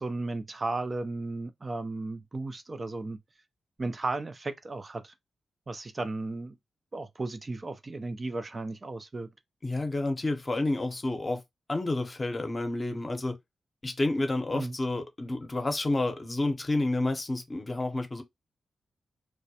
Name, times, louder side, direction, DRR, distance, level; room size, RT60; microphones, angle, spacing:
voice 1, 0.0-3.2 3.8-5.1 5.7-6.6 6.9-9.3 14.5-14.7, right 2 dB, 40° right, 0.4 m, -34 dB
voice 2, 9.6-11.4 11.7-13.4 13.8-18.2, left 2 dB, 35° left, 0.7 m, -29 dB
2.2 x 2.1 x 2.7 m
supercardioid pair, 45°, 0 cm